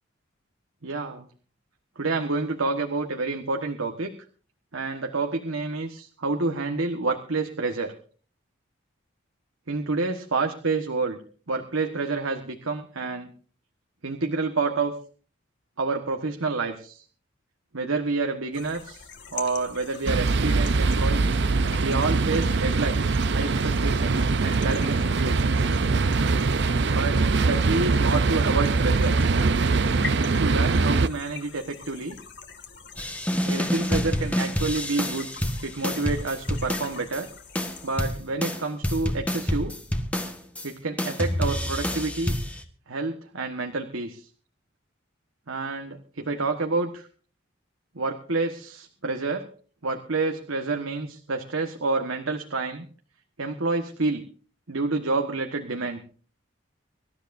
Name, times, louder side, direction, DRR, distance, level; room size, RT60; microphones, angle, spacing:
voice 1, 0.8-1.3 2.0-4.1 4.7-7.9 9.7-11.2 11.5-13.3 14.0-14.9 15.8-17.0 17.7-21.3 21.8-25.7 26.9-29.2 30.2-32.2 33.4-35.3 35.6-37.3 37.8-39.7 40.6-42.3 42.9-44.3 45.5-47.1 47.9-49.5 49.8-52.8 53.4-54.2 54.7-56.0, right 3 dB, 85° right, 4 dB, 1.5 m, -28 dB
sound 1, 18.5-38.0, left 6 dB, 55° left, 2.2 m, -44 dB
sound 2, 20.0-31.1, right 3 dB, 55° right, 0.6 m, -22 dB
sound 3, 33.0-37.2 37.6-40.7 41.0-42.6, equal, 5° left, 1.5 m, -28 dB
25.5 x 13.0 x 2.7 m, 0.41 s
head